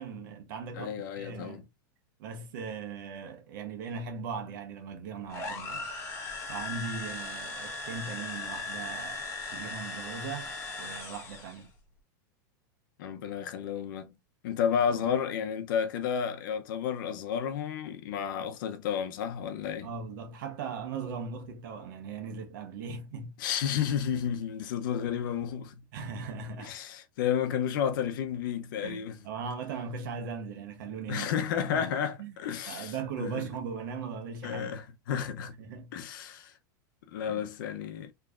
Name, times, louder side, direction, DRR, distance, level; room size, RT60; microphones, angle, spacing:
voice 1, 0.0-1.7 2.2-5.9 6.5-11.7 15.0-15.1 19.8-23.3 25.9-26.7 28.8-31.3 31.7-31.9 32.2-32.3 32.7-34.8 35.6-35.9 37.2-37.4, right 5 dB, 70° right, 1.1 m, -39 dB
voice 2, 0.8-1.6 13.0-14.2 14.4-19.9 23.4-25.8 26.6-29.2 31.1-33.5 34.4-35.6 35.9-36.5 37.0-38.1, left 8 dB, 70° left, 0.8 m, -32 dB
sound 1, 5.3-11.6, left 3 dB, 25° left, 1.2 m, -38 dB
4.8 x 3.2 x 2.5 m
supercardioid pair, 140°, 11 cm